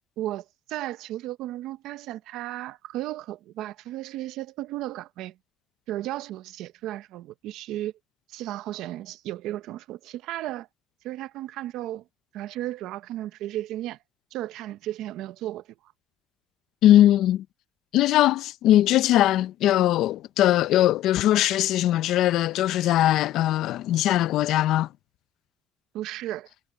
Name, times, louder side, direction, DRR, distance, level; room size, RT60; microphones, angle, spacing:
voice 1, 0.2-5.4 5.9-7.9 8.3-10.7 11.0-12.0 12.3-14.0 14.3-15.6 25.9-26.5, right 14 dB, 65° right, 0.8 m, -34 dB
voice 2, 16.8-17.4 17.9-24.9, left 13 dB, 60° left, 0.5 m, -20 dB
cardioid pair, 170°, 0 cm